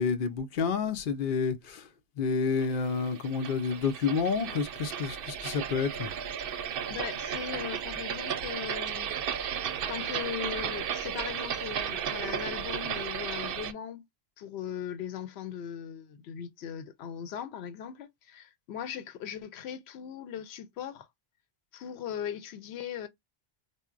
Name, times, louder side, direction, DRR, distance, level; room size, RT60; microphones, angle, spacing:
voice 1, 0.0-1.9 2.2-6.1, left 5 dB, 60° left, 0.8 m, -29 dB
sound 1, 2.6-13.7, right 8 dB, 65° right, 0.7 m, -34 dB
voice 2, 6.9-14.0 14.4-21.1 21.7-23.1, left 9 dB, 90° left, 0.8 m, -39 dB
4.0 x 2.1 x 2.4 m
omnidirectional pair, 1.0 m